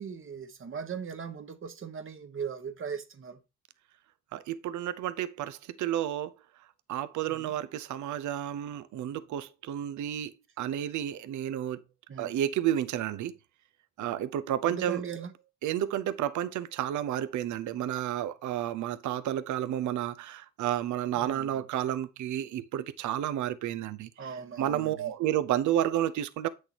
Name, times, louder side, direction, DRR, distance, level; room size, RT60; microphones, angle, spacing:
voice 1, 0.0-3.4 7.3-7.5 12.1-12.4 14.6-15.3 21.2-21.5 24.2-25.1, right 6 dB, 45° right, 1.1 m, -39 dB
voice 2, 4.3-6.3 6.9-11.8 12.2-13.3 14.0-15.0 15.6-26.5, right 11 dB, 70° right, 0.7 m, -31 dB
8.1 x 6.5 x 2.9 m
cardioid pair, 90°, 30 cm